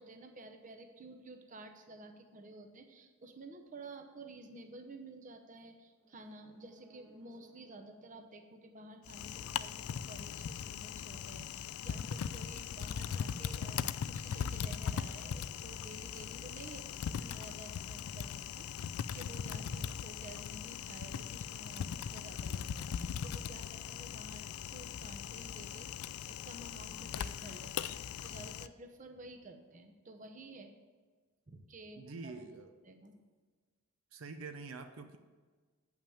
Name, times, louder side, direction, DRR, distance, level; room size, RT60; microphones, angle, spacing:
voice 1, 0.0-18.7 19.1-24.4 24.7-25.9 26.2-28.0 28.2-30.7 31.5-32.3 32.9-33.2, right 2 dB, 35° right, 5 dB, 0.8 m, -52 dB
sound 1, 6.0-9.7 10.0-10.1, right 2 dB, ahead, 1.6 m, -63 dB
Typing, 9.1-28.7, left 8 dB, 80° left, 0.3 m, -40 dB
voice 2, 19.6-19.9 32.0-32.7 34.1-35.2, right 4 dB, 75° right, 7 dB, 0.6 m, -46 dB
8.6 x 5.8 x 7.1 m, 1.4 s
head